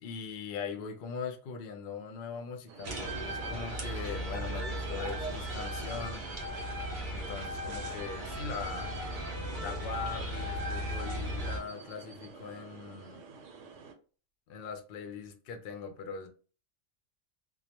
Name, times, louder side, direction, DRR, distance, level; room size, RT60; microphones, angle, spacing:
voice 1, 0.0-6.3 7.1-8.9 9.6-13.2 14.5-16.3, left 5 dB, 65° left, 0.5 m, -41 dB
sound 1, 2.7-13.9, right 5 dB, 70° right, 0.9 m, -50 dB
sound 2, 2.8-11.6, right 1 dB, 55° right, 0.5 m, -36 dB
2.2 x 2.0 x 2.8 m
omnidirectional pair, 1.4 m